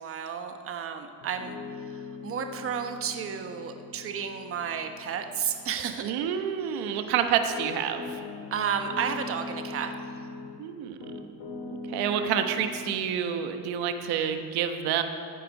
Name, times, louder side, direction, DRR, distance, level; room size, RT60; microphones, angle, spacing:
voice 1, 0.0-6.1 6.6-7.0 8.5-9.9, right 7 dB, 35° right, 6 dB, 1.0 m, -32 dB
Piano, 1.2-10.6 11.0-13.0, left 3 dB, 65° left, 2.0 m, -41 dB
voice 2, 6.0-8.2 10.6-11.0 11.7-15.0, right 8 dB, 70° right, 7 dB, 1.1 m, -28 dB
14.5 x 7.7 x 5.4 m, 2.5 s
cardioid pair, 130°, 39 cm